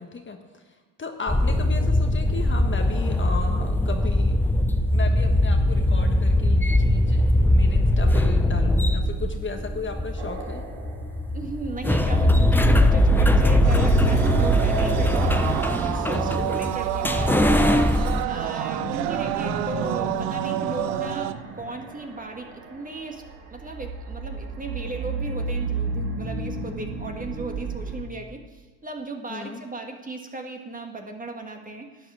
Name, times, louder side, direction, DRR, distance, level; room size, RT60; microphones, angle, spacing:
voice 1, 0.0-4.6 4.9-10.6 12.9-13.2 16.1-16.6 18.7-19.0 29.3-29.6, left 4 dB, 25° left, 4 dB, 1.4 m, -35 dB
sound 1, 1.3-18.2, left 1 dB, 5° left, 0.6 m, -21 dB
sound 2, 10.2-28.0, right 4 dB, 75° right, 2.5 m, -29 dB
voice 2, 11.3-23.2 23.5-32.1, right 2 dB, 20° right, 3 dB, 1.6 m, -36 dB
sound 3, 13.6-21.3, right 14 dB, 90° right, 0.6 m, -29 dB
12.0 x 8.6 x 4.8 m, 1.4 s
supercardioid pair, 85°, 45 cm